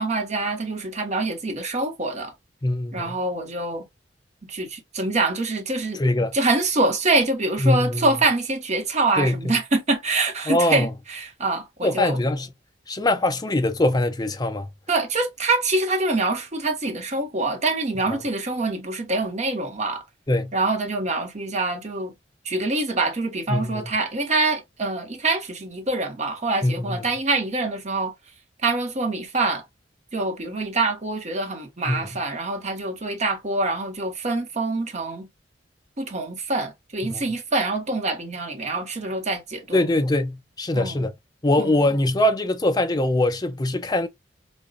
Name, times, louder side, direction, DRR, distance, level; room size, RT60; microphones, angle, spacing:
voice 1, 0.0-2.3 2.9-3.9 4.4-6.0 6.3-12.2 14.9-20.0 20.5-22.1 22.4-28.1 28.6-29.6 30.1-35.3 36.0-39.8 40.7-41.1 41.6-41.8, right 2 dB, 40° right, 1.0 m, -25 dB
voice 2, 2.6-3.2 6.0-6.3 7.6-8.1 9.2-9.5 10.5-10.9 11.8-12.5 12.9-14.7 18.1-18.2 20.3-20.5 23.5-23.9 26.6-27.0 31.9-32.1 37.0-37.2 39.7-41.1 41.4-44.1, left 1 dB, 20° left, 0.5 m, -22 dB
5.2 x 2.3 x 2.3 m
head